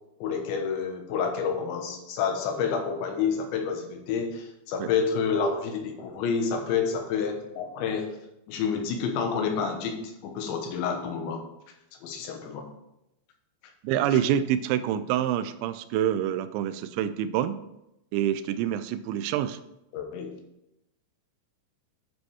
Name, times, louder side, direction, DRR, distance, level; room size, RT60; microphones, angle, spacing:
voice 1, 0.2-8.2 8.5-11.4 12.0-12.7 14.1-14.2 19.9-20.4, left 6 dB, 85° left, 4 dB, 3.5 m, -29 dB
voice 2, 13.8-17.6 18.1-19.6, right 10 dB, 85° right, 12 dB, 2.9 m, -26 dB
10.0 x 5.3 x 4.7 m, 0.85 s
omnidirectional pair, 5.2 m